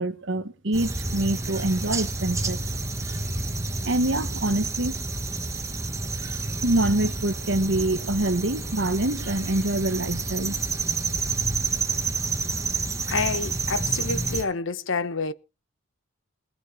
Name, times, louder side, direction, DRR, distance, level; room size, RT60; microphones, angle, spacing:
voice 1, 0.0-2.6 3.8-5.0 6.6-10.5, right 1 dB, 60° right, 1.2 m, -25 dB
sound 1, 0.7-14.4, right 3 dB, 15° right, 1.3 m, -29 dB
voice 2, 13.1-15.3, left 4 dB, 65° left, 0.9 m, -28 dB
21.0 x 7.0 x 5.0 m
head